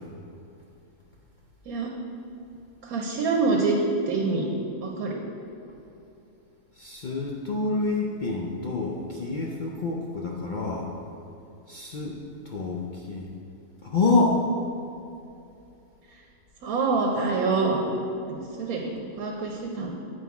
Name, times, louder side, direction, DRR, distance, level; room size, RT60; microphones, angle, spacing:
voice 1, 2.8-3.8 4.1-4.5 4.8-5.2 16.6-17.8 18.3-19.9, right 4 dB, 85° right, -1 dB, 1.2 m, -26 dB
voice 2, 6.8-10.9 11.7-12.2 12.5-13.3 13.8-14.4, left 3 dB, 65° left, -2 dB, 0.4 m, -27 dB
7.7 x 4.8 x 4.7 m, 2.8 s
omnidirectional pair, 1.5 m